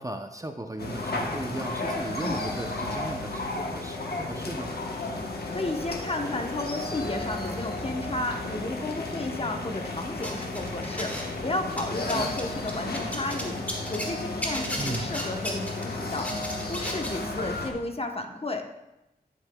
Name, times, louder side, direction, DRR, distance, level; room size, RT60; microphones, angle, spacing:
voice 1, 0.0-4.7 12.1-12.3 14.8-15.1, right 2 dB, 20° right, 5 dB, 0.6 m, -36 dB
sound 1, 0.8-17.7, left 2 dB, 85° left, 1.0 m, -33 dB
voice 2, 5.5-13.5 13.9-16.3 16.7-18.6, left 2 dB, 35° left, 4 dB, 0.9 m, -33 dB
sound 2, 10.2-11.4 11.7-14.1 14.4-17.2, equal, 10° left, 1.6 m, -34 dB
9.7 x 8.2 x 2.3 m, 0.92 s
wide cardioid pair, 55°, 16 cm